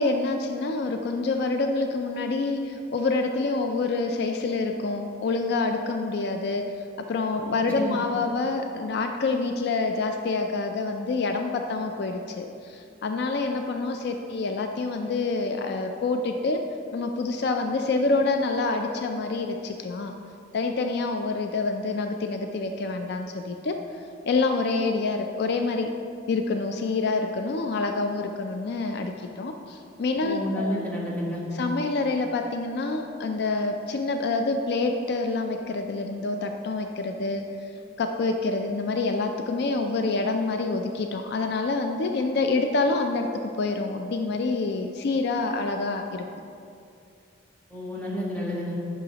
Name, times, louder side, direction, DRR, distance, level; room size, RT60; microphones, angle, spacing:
voice 1, 0.0-16.7 16.9-20.1 20.5-23.8 24.2-25.9 26.3-30.8 31.5-37.7 38.0-46.2, left 3 dB, 60° left, 5 dB, 0.4 m, -27 dB
voice 2, 7.4-8.0 30.2-31.4 47.7-48.7, equal, 10° left, -5 dB, 1.3 m, -31 dB
10.0 x 5.8 x 2.9 m, 2.5 s
head